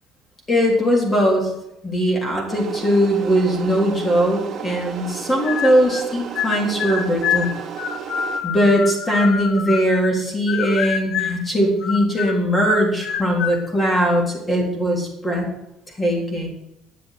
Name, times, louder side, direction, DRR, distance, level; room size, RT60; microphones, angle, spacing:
voice 1, 0.5-1.5 1.8-7.5 8.4-15.5 16.0-16.5, equal, 15° left, 0 dB, 3.7 m, -20 dB
sound 1, 2.5-8.4, right 8 dB, 35° right, 2.5 m, -33 dB
sound 2, 5.4-6.1 6.4-10.2 10.5-11.5 11.8-13.6, left 8 dB, 55° left, 1.1 m, -26 dB
11.0 x 7.4 x 8.4 m, 0.85 s
cardioid pair, 160°, 0 cm